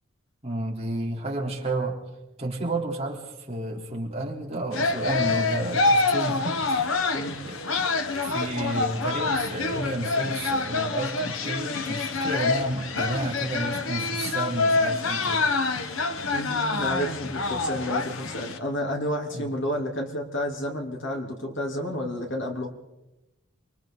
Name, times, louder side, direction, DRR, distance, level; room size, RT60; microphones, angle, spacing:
voice 1, 0.4-2.0 2.4-7.0 7.4-7.6 8.2-15.5 19.3-19.5, right 2 dB, 30° right, -2 dB, 3.7 m, -31 dB
sound 1, 4.7-18.6, left 3 dB, 85° left, 1.3 m, -26 dB
voice 2, 16.3-22.7, equal, 65° left, 0 dB, 3.3 m, -30 dB
29.5 x 23.5 x 4.0 m, 0.98 s
head